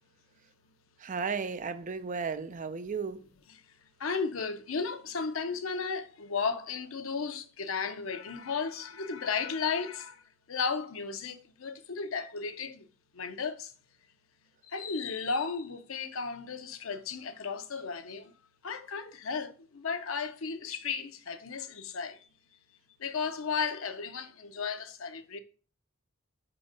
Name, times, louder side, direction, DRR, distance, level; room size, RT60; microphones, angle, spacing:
voice 1, 1.0-3.2, right 5 dB, 40° right, 0.5 m, -34 dB
voice 2, 4.0-10.2 10.5-12.9 13.1-13.7 14.6-18.3 18.6-22.3 23.0-25.4, left 5 dB, 85° left, 0.7 m, -34 dB
4.8 x 3.9 x 5.1 m
head